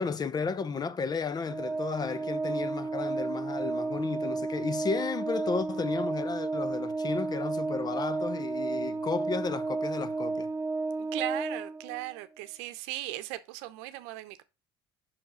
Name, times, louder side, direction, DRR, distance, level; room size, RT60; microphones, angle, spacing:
voice 1, 0.0-10.5, left 5 dB, 30° left, 0.7 m, -33 dB
Organ, 1.5-12.2, right 3 dB, 20° right, 0.4 m, -32 dB
voice 2, 11.0-14.4, right 16 dB, 75° right, 0.8 m, -38 dB
5.8 x 4.7 x 6.2 m
hypercardioid pair, 80°, 13 cm